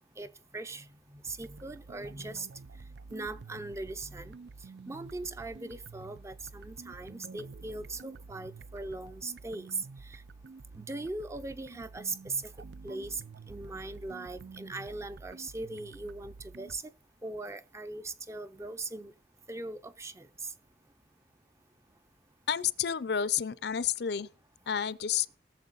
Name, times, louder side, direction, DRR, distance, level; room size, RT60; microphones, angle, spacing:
voice 1, 0.5-2.5 3.1-4.3 4.9-9.7 10.0-10.2 10.8-12.4 12.8-13.2 13.5-16.8 17.2-19.1 19.5-20.5, right 2 dB, 15° right, 0.5 m, -40 dB
sound 1, 1.3-16.8, right 4 dB, 65° right, 0.4 m, -49 dB
voice 2, 22.5-24.3 24.7-25.4, left 8 dB, 60° left, 0.5 m, -30 dB
18.5 x 7.1 x 4.0 m
head